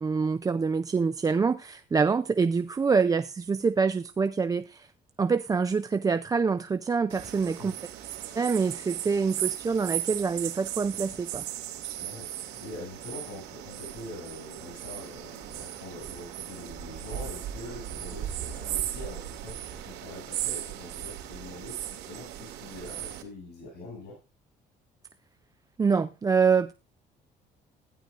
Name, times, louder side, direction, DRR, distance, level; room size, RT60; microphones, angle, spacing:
voice 1, 0.0-4.9 5.2-7.7 8.4-11.4 25.8-26.7, right 5 dB, 20° right, 0.4 m, -26 dB
sound 1, 7.1-23.2, right 12 dB, 85° right, 2.2 m, -37 dB
voice 2, 12.0-24.2, left 2 dB, 75° left, 7.0 m, -44 dB
15.5 x 10.5 x 2.5 m
cardioid pair, 110°, 17 cm